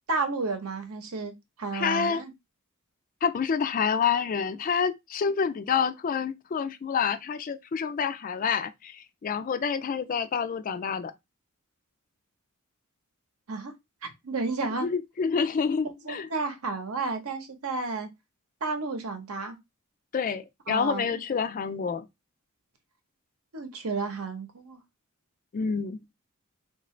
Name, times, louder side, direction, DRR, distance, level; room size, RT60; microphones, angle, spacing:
voice 1, 0.1-1.3 1.6-2.3 13.5-13.7 14.0-14.9 16.0-18.1 18.6-19.6 20.7-21.1 23.5-24.8, right 3 dB, 70° right, 0.9 m, -32 dB
voice 2, 1.7-2.2 3.2-11.1 14.8-16.3 20.1-22.1 25.5-26.0, left 6 dB, 35° left, 0.3 m, -28 dB
3.6 x 2.5 x 3.1 m
head